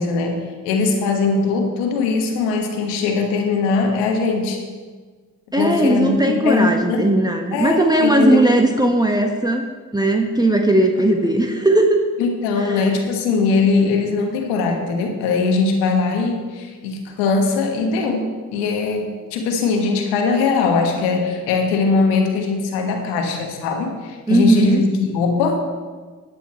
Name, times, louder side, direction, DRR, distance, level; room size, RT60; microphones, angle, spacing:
voice 1, 0.0-4.6 5.5-7.1 7.5-8.5 12.2-25.6, left 4 dB, 80° left, 4 dB, 1.4 m, -20 dB
voice 2, 5.5-9.6 9.9-12.0 12.6-12.9 24.3-24.8, right 1 dB, 10° right, 3 dB, 1.2 m, -17 dB
10.5 x 8.5 x 4.4 m, 1.5 s
hypercardioid pair, 40°, 41 cm